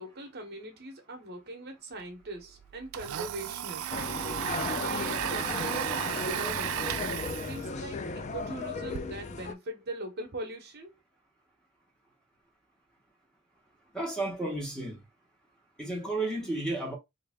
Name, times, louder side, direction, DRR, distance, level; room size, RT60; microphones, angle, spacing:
voice 1, 0.0-4.1 4.6-7.0 7.5-10.9, right 2 dB, 50° right, 0.9 m, -41 dB
Domestic sounds home sounds, 2.0-2.1 2.4-9.0, right 10 dB, 85° right, 0.4 m, -35 dB
sound 1, 3.9-9.5, left 3 dB, 35° left, 0.4 m, -35 dB
voice 2, 13.9-15.0 15.8-16.9, right 2 dB, 5° left, 1.0 m, -32 dB
3.3 x 2.5 x 3.4 m
head